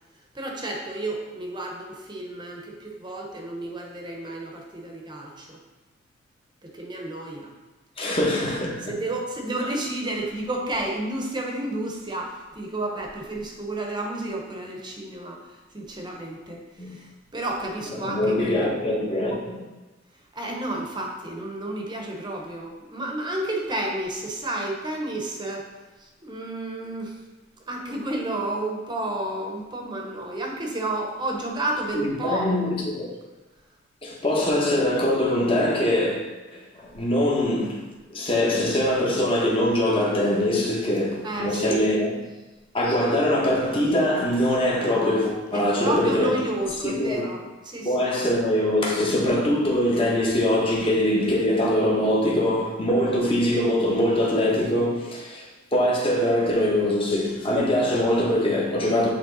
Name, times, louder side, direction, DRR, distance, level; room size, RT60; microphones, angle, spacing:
voice 1, 0.3-5.6 6.6-7.5 8.9-15.4 15.7-18.7 20.3-25.7 26.0-27.2 27.7-32.6 41.2-41.8 45.5-47.9, right 1 dB, 25° right, 1.0 m, -31 dB
voice 2, 8.0-8.9 16.8-17.0 18.0-19.6 31.9-33.1 34.0-36.2 36.5-37.8 38.1-42.1 42.7-46.4 46.8-47.3 47.8-55.5 55.7-59.1, left 1 dB, 30° left, 1.3 m, -23 dB
8.6 x 3.3 x 4.0 m
head